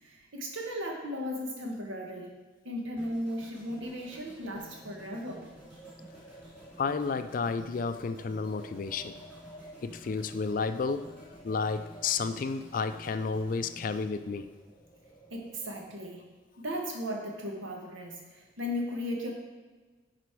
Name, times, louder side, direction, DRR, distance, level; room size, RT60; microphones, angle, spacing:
voice 1, 0.0-2.3 2.6-5.4 15.3-16.2 16.6-19.3, equal, 85° right, 0 dB, 1.5 m, -36 dB
sound 1, 3.0-15.2 15.4-15.7, equal, 10° right, 2.8 m, -53 dB
Wind, 3.8-16.4, right 1 dB, 20° left, 1.0 m, -55 dB
voice 2, 6.8-9.2 9.8-11.1 11.4-14.5, left 4 dB, 45° left, 11 dB, 0.3 m, -31 dB
10.5 x 4.1 x 4.7 m, 1.3 s
head